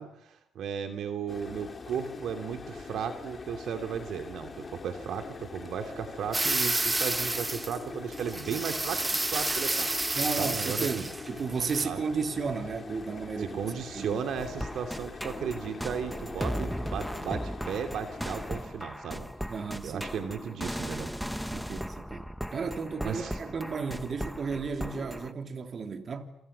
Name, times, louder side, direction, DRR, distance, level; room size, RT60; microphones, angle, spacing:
voice 1, 0.0-9.9 10.4-11.1 11.8-12.0 13.4-19.3 19.8-21.1 23.0-23.5, right 7 dB, 70° right, 2.8 m, -35 dB
sound 1, 1.3-18.7, left 4 dB, 30° left, 4.7 m, -43 dB
sound 2, 6.3-7.8 8.1-11.3 11.6-11.8, right 2 dB, 15° right, 1.7 m, -30 dB
voice 2, 10.1-14.2 19.5-20.0 21.5-22.2 22.5-26.3, right 5 dB, 45° right, 3.3 m, -33 dB
sound 3, 14.4-25.3, equal, ahead, 1.1 m, -37 dB
28.5 x 27.5 x 6.9 m
cardioid pair, 90°, 0 cm